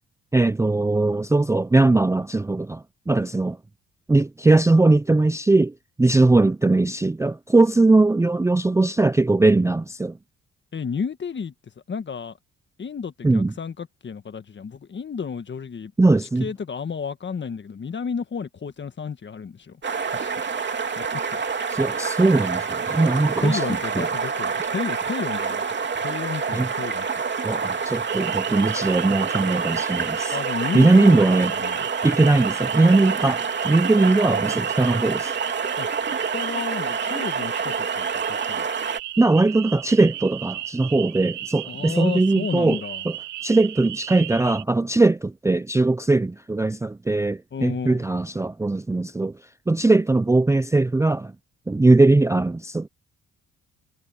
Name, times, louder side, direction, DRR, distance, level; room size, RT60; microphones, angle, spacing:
voice 1, 0.3-3.6 4.1-10.1 13.2-13.5 16.0-16.5 21.7-23.6 24.0-24.1 26.5-26.7 27.4-30.4 30.7-31.5 32.0-35.3 39.2-42.8 43.1-43.2 43.4-49.3 49.7-51.3 51.7-52.9, right 2 dB, 10° right, 0.5 m, -20 dB
voice 2, 10.7-11.5 11.9-12.4 12.8-15.9 16.4-19.8 20.1-20.3 21.0-21.4 23.4-25.6 26.0-27.1 30.3-31.9 35.8-35.9 36.3-38.7 41.7-43.0 47.5-48.0, left 6 dB, 40° left, 1.6 m, -32 dB
sound 1, 19.8-39.0, right 5 dB, 35° right, 3.0 m, -27 dB
sound 2, 28.1-44.6, right 13 dB, 75° right, 1.1 m, -35 dB
cardioid pair, 90°, 30 cm